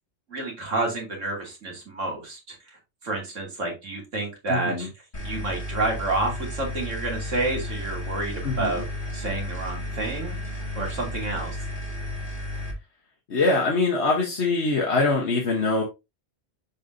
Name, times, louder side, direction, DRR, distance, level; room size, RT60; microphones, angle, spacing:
voice 1, 0.3-2.6 3.0-4.9 5.2-8.8 9.1-10.4 10.8-11.6, right 2 dB, 80° right, 0 dB, 3.0 m, -29 dB
voice 2, 4.5-4.9 8.4-8.8 13.3-15.8, left 3 dB, 65° left, -1 dB, 1.5 m, -23 dB
sound 1, 5.1-12.7, left 1 dB, 45° left, 2.3 m, -33 dB
7.2 x 5.2 x 2.7 m, 0.24 s
omnidirectional pair, 1.3 m